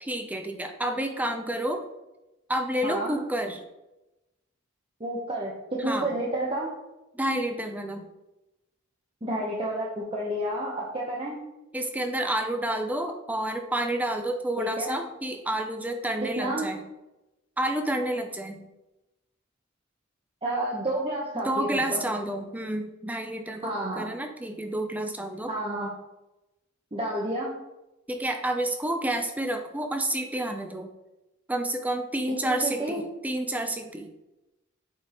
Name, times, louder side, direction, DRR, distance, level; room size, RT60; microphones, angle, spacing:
voice 1, 0.0-1.8 2.5-3.6 5.9-6.1 7.1-8.1 11.7-16.8 17.6-18.6 21.4-25.5 28.1-30.9 31.5-34.1, right 1 dB, 10° right, 5 dB, 0.5 m, -29 dB
voice 2, 5.0-6.7 9.2-11.4 14.6-15.0 16.4-16.7 20.4-22.1 23.6-24.0 25.5-25.9 26.9-27.5 32.4-33.0, right 1 dB, 25° right, -4 dB, 1.0 m, -30 dB
8.5 x 5.3 x 3.0 m, 0.97 s
head